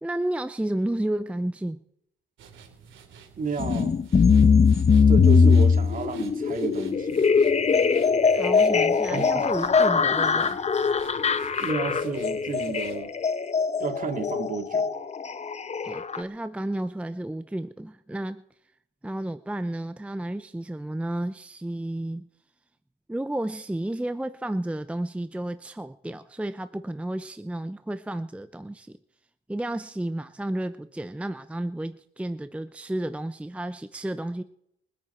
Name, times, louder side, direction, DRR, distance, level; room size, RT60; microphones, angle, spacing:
voice 1, 0.0-1.8 8.3-10.6 15.8-18.4 19.0-22.3 23.1-29.0 29.5-34.4, right 1 dB, 5° right, 11 dB, 0.6 m, -32 dB
sound 1, 2.4-13.0, right 6 dB, 75° right, 3.2 m, -50 dB
voice 2, 3.4-4.0 5.1-7.2 9.1-9.5 11.6-13.1 13.8-14.9, right 5 dB, 45° right, 7 dB, 2.1 m, -32 dB
sound 2, 3.6-16.2, left 5 dB, 35° left, 0.9 m, -21 dB
24.5 x 9.5 x 4.4 m, 0.75 s
cardioid pair, 90°, 20 cm